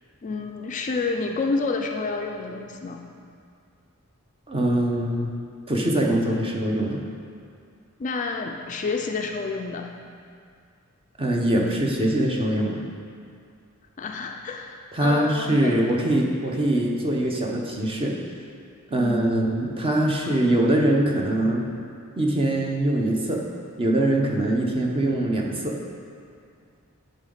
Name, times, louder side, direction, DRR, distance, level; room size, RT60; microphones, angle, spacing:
voice 1, 0.2-3.0 8.0-9.9 14.0-15.8 19.0-19.3, left 4 dB, 35° left, 3 dB, 0.3 m, -29 dB
voice 2, 4.5-5.3 5.7-7.0 11.2-12.8 14.9-18.2 18.9-21.6 22.2-23.4 23.8-25.8, right 1 dB, 25° right, -1 dB, 0.8 m, -23 dB
10.5 x 3.9 x 3.8 m, 2.3 s
head